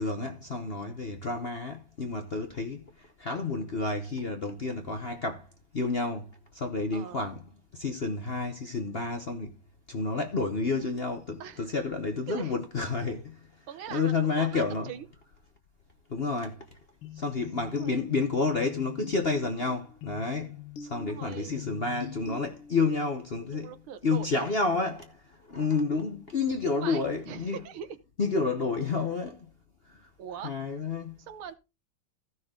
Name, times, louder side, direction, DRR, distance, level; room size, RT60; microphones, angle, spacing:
voice 1, 0.0-5.5 5.7-7.4 7.7-9.5 9.9-13.4 13.9-14.9 16.1-16.6 17.2-23.7 24.0-27.6 28.2-29.5 30.4-31.2, left 3 dB, 45° left, 0.8 m, -30 dB
voice 2, 11.4-11.7 12.3-12.6 13.7-15.1 17.6-18.1 21.1-22.0 23.5-24.5 26.8-28.0 30.2-30.6 31.2-31.5, right 9 dB, 85° right, 1.9 m, -42 dB
sound 1, 17.0-23.0, left 6 dB, 85° left, 1.8 m, -44 dB
15.0 x 6.3 x 3.7 m
omnidirectional pair, 2.3 m